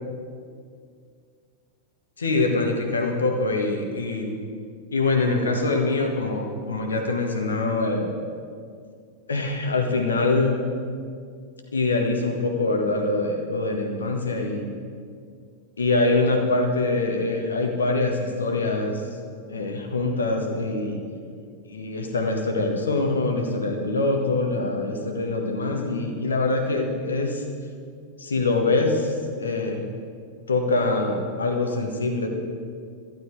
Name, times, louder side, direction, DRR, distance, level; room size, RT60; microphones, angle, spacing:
voice 1, 2.2-4.4 4.9-8.1 9.3-10.7 11.7-14.7 15.8-19.2 19.5-21.0 21.6-27.4 28.2-29.9 30.5-32.3, left 2 dB, 70° left, 3 dB, 1.6 m, -24 dB
12.5 x 11.5 x 4.8 m, 2.2 s
figure-of-eight pair, 90°, 0 cm